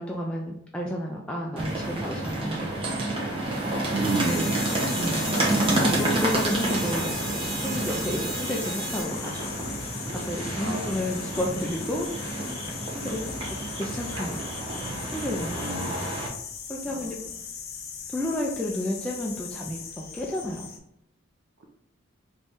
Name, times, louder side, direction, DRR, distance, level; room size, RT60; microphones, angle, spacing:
voice 1, 0.0-3.0 4.2-4.5 5.0-5.2 5.9-7.1 7.5-9.5 10.1-12.1 12.9-13.2 13.5-14.4 15.1-15.8 16.7-17.2 18.1-20.7, left 1 dB, 5° left, -3 dB, 0.3 m, -31 dB
sound 1, 1.6-16.3, right 1 dB, 30° right, 0.7 m, -29 dB
voice 2, 3.9-4.6 4.9-5.0 10.5-11.0 13.0-13.4 15.5-16.2 16.9-17.1, right 2 dB, 70° right, 1 dB, 0.5 m, -33 dB
sound 2, 4.0-9.0, right 2 dB, 45° right, 1.1 m, -35 dB
sound 3, 4.2-20.8, left 6 dB, 50° left, 0.6 m, -39 dB
3.1 x 2.6 x 3.5 m, 0.78 s
head